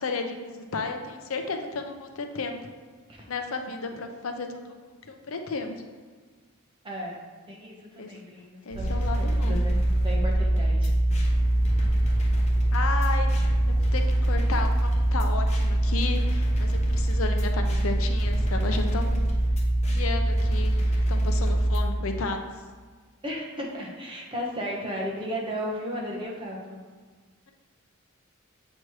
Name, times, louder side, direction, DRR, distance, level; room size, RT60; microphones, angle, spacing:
voice 1, 0.0-2.8 3.3-4.7 5.0-5.8 8.0-8.1 8.6-9.6 12.7-13.4 13.7-19.2 19.9-22.5, left 3 dB, 75° left, 5 dB, 0.6 m, -33 dB
voice 2, 6.8-7.2 7.5-9.8 10.0-10.9 23.2-26.8, equal, 25° right, -2 dB, 1.1 m, -34 dB
sound 1, 8.7-21.8, right 1 dB, 35° left, 0.9 m, -23 dB
7.5 x 3.1 x 4.7 m, 1.5 s
head